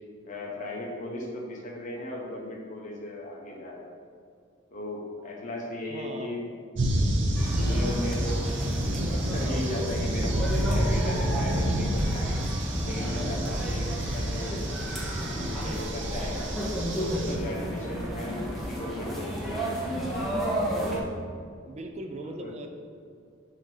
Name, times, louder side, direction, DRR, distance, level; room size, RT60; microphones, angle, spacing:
voice 1, 0.2-4.0 4.7-6.4 7.0-8.4 8.8-12.4 12.8-14.6 15.0-16.5 16.9-19.9 22.4-22.5, left 1 dB, 40° left, -1 dB, 0.9 m, -37 dB
voice 2, 5.9-6.4 21.6-22.7, right 2 dB, 35° right, 4 dB, 0.4 m, -39 dB
sound 1, 6.8-17.4, right 1 dB, 65° right, 0.7 m, -28 dB
sound 2, 7.3-21.0, equal, ahead, 0.9 m, -33 dB
6.3 x 2.8 x 5.4 m, 2.2 s
head